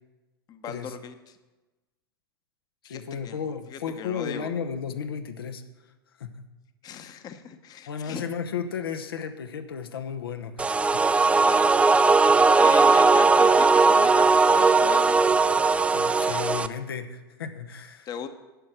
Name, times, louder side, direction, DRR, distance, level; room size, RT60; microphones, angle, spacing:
voice 1, 0.5-1.4 2.8-3.4 3.7-4.5 6.8-8.3 11.2-11.9 12.6-15.3 18.1-18.3, left 7 dB, 30° left, 9 dB, 1.0 m, -38 dB
voice 2, 2.8-5.6 6.2-6.5 7.9-11.5 15.9-18.1, left 7 dB, 75° left, 7 dB, 0.9 m, -34 dB
sound 1, 10.6-16.7, right 4 dB, 10° right, 0.4 m, -19 dB
11.5 x 6.5 x 7.6 m, 1.1 s
figure-of-eight pair, 95°, 12 cm